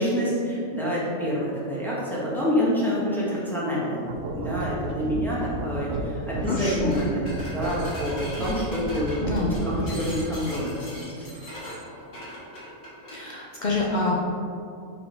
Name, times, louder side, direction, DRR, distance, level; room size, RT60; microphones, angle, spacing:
voice 1, 0.0-4.1 4.3-7.3 7.5-11.3, equal, ahead, -8 dB, 1.3 m, -27 dB
sound 1, 4.0-10.2, right 2 dB, 75° right, 1.0 m, -33 dB
Sounds For Earthquakes - Spoon Cup Plate, 6.4-6.6 6.9-13.2, equal, 70° left, 2.0 m, -40 dB
voice 2, 6.5-7.0 9.2-9.6 13.1-14.2, left 3 dB, 50° left, -3 dB, 0.5 m, -27 dB
5.3 x 4.1 x 4.5 m, 2.6 s
omnidirectional pair, 1.4 m